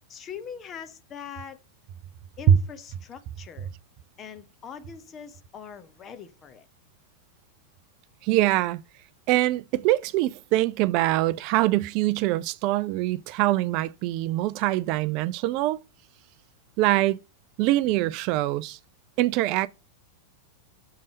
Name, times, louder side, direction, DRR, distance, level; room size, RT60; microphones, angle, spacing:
voice 1, 0.1-1.6 2.4-3.7 4.2-6.7, left 7 dB, 25° left, 1.0 m, -42 dB
voice 2, 8.2-8.8 9.3-15.8 16.8-17.2 17.6-18.8 19.2-19.7, right 14 dB, 45° right, 0.4 m, -23 dB
6.5 x 5.3 x 5.1 m
figure-of-eight pair, 90°, 0 cm